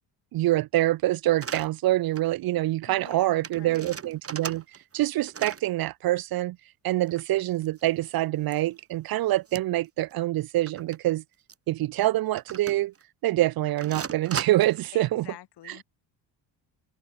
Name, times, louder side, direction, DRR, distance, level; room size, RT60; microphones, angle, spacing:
voice 1, 0.3-4.6 4.9-6.6 6.8-11.2 11.7-12.9 13.2-15.3 15.6-15.8, right 15 dB, 50° right, 0.6 m, -25 dB
sound 1, 1.4-1.7 2.2-2.3 2.6-2.7 2.9-3.2 3.4-5.0 5.3-5.7 7.0-8.1 8.5-8.6 9.5-9.9 10.1-10.2 10.7-11.0 11.5-11.6 12.4-13.0 13.8-14.8, right 6 dB, 30° right, 3.2 m, -38 dB
voice 2, 2.9-3.9 14.9-15.8, left 13 dB, 60° left, 2.4 m, -47 dB
cardioid pair, 105°, 46 cm